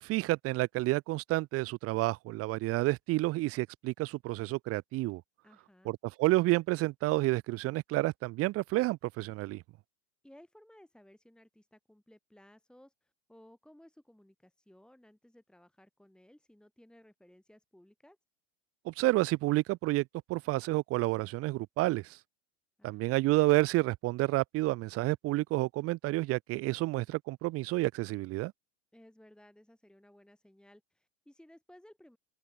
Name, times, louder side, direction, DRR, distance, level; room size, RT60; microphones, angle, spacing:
voice 1, 0.0-5.2 5.9-9.6 18.9-22.2 22.8-28.5, right 19 dB, 35° right, 0.8 m, -30 dB
voice 2, 5.4-6.0 10.2-18.2 22.8-23.2 28.9-32.2, left 1 dB, ahead, 5.4 m, -59 dB
open air
hypercardioid pair, 100°, 39 cm